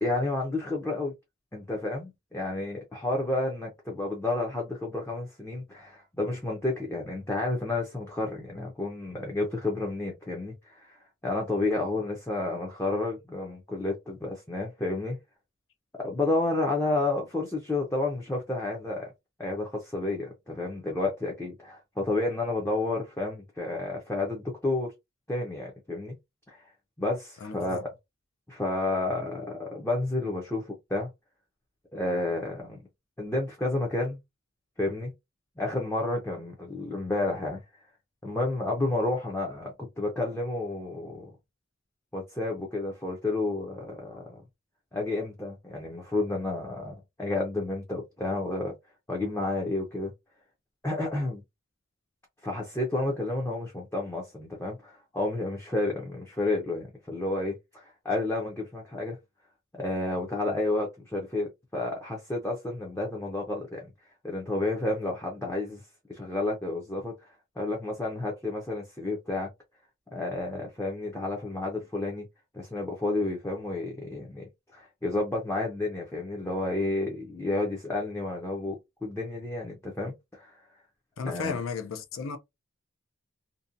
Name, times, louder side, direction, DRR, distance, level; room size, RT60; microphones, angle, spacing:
voice 1, 0.0-1.1 1.5-15.2 16.0-19.1 19.4-24.9 25.3-26.1 26.5-26.7 27.0-27.9 28.5-31.1 31.9-32.8 33.2-34.2 34.8-35.1 35.6-37.6 38.2-41.3 42.1-44.4 44.9-48.7 49.1-50.1 50.8-51.4 52.4-59.2 59.8-63.9 64.2-65.8 66.1-69.5 70.1-72.3 72.5-80.6 81.2-81.6, left 2 dB, 10° left, 0.5 m, -31 dB
voice 2, 27.4-27.8 81.2-82.4, left 5 dB, 70° left, 0.5 m, -34 dB
2.6 x 2.1 x 2.5 m
head